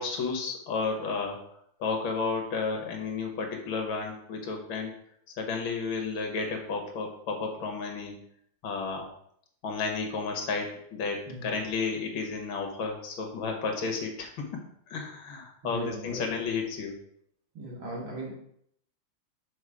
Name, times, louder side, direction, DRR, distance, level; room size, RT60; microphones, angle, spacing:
voice 1, 0.0-1.4 1.8-4.9 5.4-8.2 8.6-9.1 9.6-17.0, left 4 dB, 70° left, 3 dB, 1.8 m, -32 dB
voice 2, 15.6-16.2 17.5-18.3, right 1 dB, 65° right, -4 dB, 2.7 m, -37 dB
6.3 x 4.8 x 4.8 m, 0.70 s
omnidirectional pair, 2.4 m